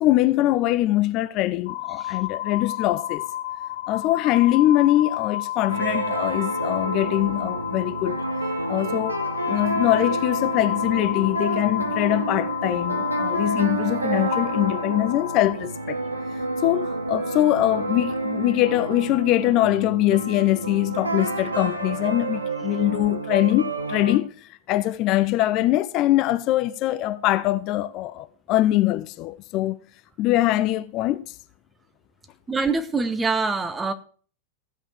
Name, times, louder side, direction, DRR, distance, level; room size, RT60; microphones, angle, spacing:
voice 1, 0.0-3.2 3.9-8.2 8.7-9.2 9.5-16.0 16.6-29.8 30.2-31.4, left 15 dB, 40° left, 0.5 m, -23 dB
sound 1, 1.7-15.5, left 12 dB, 60° left, 1.2 m, -31 dB
sound 2, 5.7-24.2, right 2 dB, 80° right, 1.4 m, -29 dB
voice 2, 32.5-33.9, right 4 dB, 15° right, 1.0 m, -24 dB
15.0 x 5.3 x 6.4 m
figure-of-eight pair, 90°, 0 cm